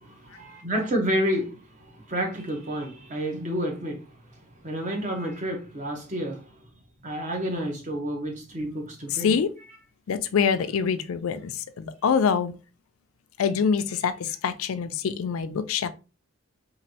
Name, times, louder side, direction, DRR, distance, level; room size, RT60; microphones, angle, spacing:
voice 1, 0.0-4.1 4.3-6.6 7.0-9.3, equal, 35° right, 0.8 m, -30 dB
voice 2, 9.1-9.5 10.1-12.5 13.4-15.9, left 6 dB, 85° left, 0.4 m, -25 dB
3.0 x 2.5 x 2.7 m
head